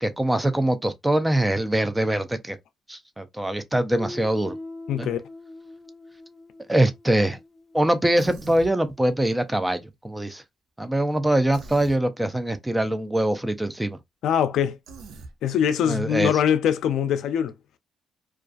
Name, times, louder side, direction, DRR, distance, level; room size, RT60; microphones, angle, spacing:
voice 1, 0.0-2.6 2.9-4.6 5.0-5.1 6.7-7.4 7.7-10.4 10.8-14.0 15.9-16.3, right 1 dB, 10° right, 0.4 m, -23 dB
Guitar, 4.0-8.6, left 2 dB, 20° left, 1.0 m, -42 dB
voice 2, 4.9-5.2 14.2-14.8 15.4-17.5, left 9 dB, 80° left, 0.4 m, -22 dB
Human voice, 8.1-8.7 11.5-12.0 14.9-15.3, right 4 dB, 80° right, 0.5 m, -42 dB
2.4 x 2.3 x 2.4 m
cardioid pair, 90°, 0 cm